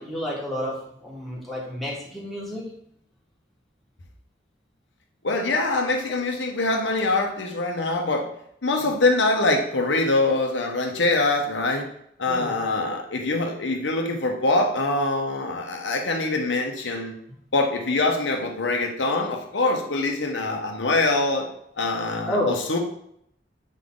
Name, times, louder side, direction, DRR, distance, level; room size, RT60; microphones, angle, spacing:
voice 1, 0.0-2.7 12.3-12.6 22.3-22.6, equal, ahead, -6 dB, 1.7 m, -30 dB
voice 2, 5.2-8.3 8.6-11.9 12.2-17.2 17.5-21.5 21.8-22.8, left 2 dB, 75° left, 2 dB, 1.0 m, -24 dB
7.4 x 3.8 x 3.7 m, 0.71 s
head